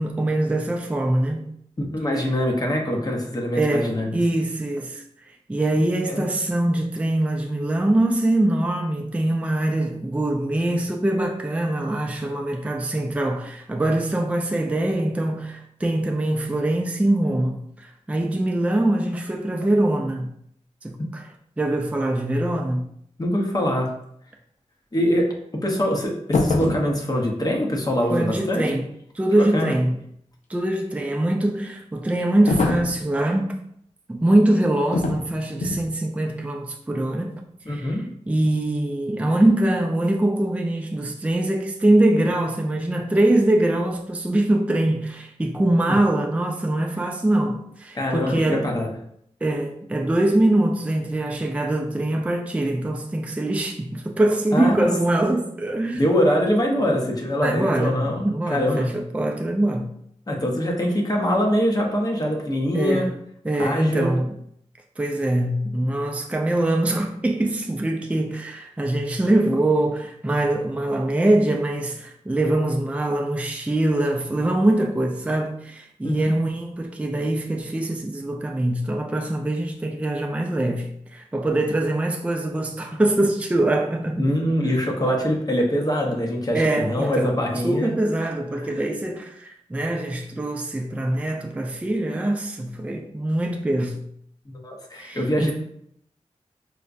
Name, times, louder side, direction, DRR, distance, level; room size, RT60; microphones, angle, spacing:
voice 1, 0.0-1.5 3.5-5.0 5.5-20.3 20.8-21.2 21.6-22.9 28.1-28.9 29.1-30.0 30.5-33.6 34.1-37.4 37.7-38.0 38.3-48.7 49.4-56.0 57.4-59.9 62.7-63.1 63.4-64.4 65.0-84.3 86.5-87.4 87.6-94.0 94.9-95.5, right 1 dB, 10° right, 0.4 m, -23 dB
voice 2, 1.8-4.1 6.1-6.2 23.2-23.9 24.9-25.3 25.6-28.7 29.3-29.7 37.7-38.0 47.9-48.9 54.5-54.9 55.9-58.9 60.3-63.1 63.6-64.1 76.0-76.3 84.2-87.9 88.6-88.8 94.6-95.5, equal, 30° left, 0.7 m, -23 dB
sound 1, 26.3-26.9 32.5-33.0 34.9-35.3 35.6-35.9, left 3 dB, 85° left, 0.4 m, -23 dB
4.7 x 2.1 x 2.5 m
wide cardioid pair, 70°, 12 cm